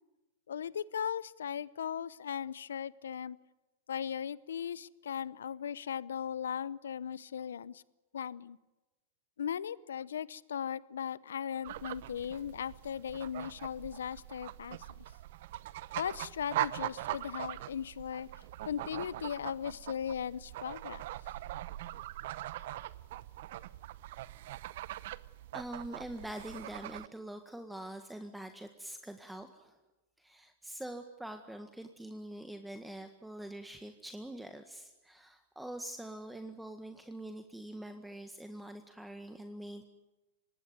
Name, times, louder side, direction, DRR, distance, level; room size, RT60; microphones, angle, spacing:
voice 1, 0.5-3.4 3.9-7.8 8.1-8.6 9.4-15.0 15.9-21.0, left 8 dB, 80° left, 21 dB, 0.8 m, -38 dB
sound 1, 11.6-27.1, right 15 dB, 60° right, 0.9 m, -42 dB
voice 2, 25.5-29.8 30.2-39.8, right 1 dB, 5° right, 7 dB, 1.7 m, -44 dB
24.5 x 19.5 x 9.4 m, 1.1 s
hypercardioid pair, 105°, 0 cm